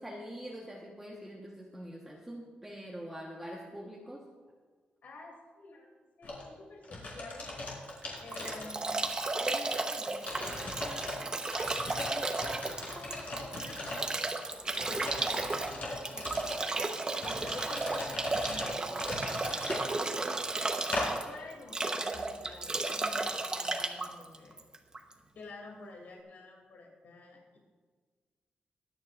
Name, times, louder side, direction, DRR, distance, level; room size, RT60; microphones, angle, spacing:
voice 1, 0.0-4.3, equal, 5° right, -3 dB, 1.2 m, -44 dB
voice 2, 5.0-7.5 8.2-11.7 12.0-14.4 14.8-16.8 17.2-20.3 20.9-24.6 25.3-27.6, left 2 dB, 70° left, 0 dB, 2.7 m, -50 dB
sound 1, 6.2-6.4 6.8-9.1 9.5-9.6 10.2-11.1 11.4-14.2 14.7-16.6 17.2-19.9 20.9-21.1, left 2 dB, 50° left, 4.3 m, -39 dB
Bathtub (filling or washing) / Drip / Trickle dribble, 7.9-25.1, right 3 dB, 25° right, 1.0 m, -34 dB
sound 2, 14.1-22.8, left 1 dB, 35° left, 2.2 m, -55 dB
24.0 x 9.6 x 2.5 m, 1.5 s
wide cardioid pair, 140°, 3 cm